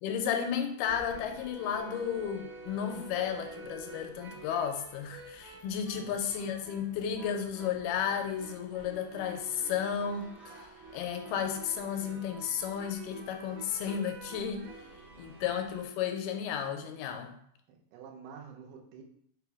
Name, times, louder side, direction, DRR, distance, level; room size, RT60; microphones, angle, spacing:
voice 1, 0.0-10.5 10.9-14.7 15.2-17.3, left 8 dB, 90° left, 5 dB, 2.1 m, -33 dB
sound 1, 0.8-15.8, right 3 dB, 70° right, 1.2 m, -48 dB
voice 2, 17.7-19.0, right 7 dB, 90° right, 2 dB, 2.3 m, -48 dB
5.1 x 2.0 x 4.6 m, 0.69 s
omnidirectional pair, 3.6 m